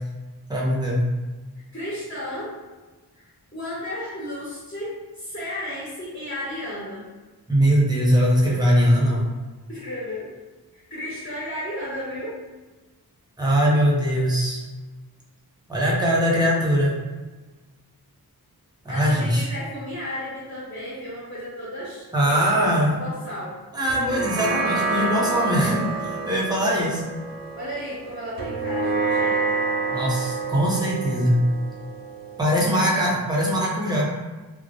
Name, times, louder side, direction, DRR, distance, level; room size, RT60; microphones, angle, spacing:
voice 1, 0.5-1.0 7.5-9.3 13.4-14.6 15.7-17.0 18.8-19.5 22.1-22.9 23.7-27.0 29.9-31.4 32.4-34.0, equal, 10° right, -4 dB, 0.7 m, -21 dB
voice 2, 1.7-2.5 3.1-7.1 9.7-10.3 10.7-12.4 18.9-23.6 27.5-29.6 32.7-33.1, left 1 dB, 30° left, -9 dB, 0.9 m, -33 dB
sound 1, 23.9-32.6, right 4 dB, 60° right, 0.5 m, -28 dB
2.2 x 2.0 x 2.7 m, 1.2 s
cardioid pair, 50°, 39 cm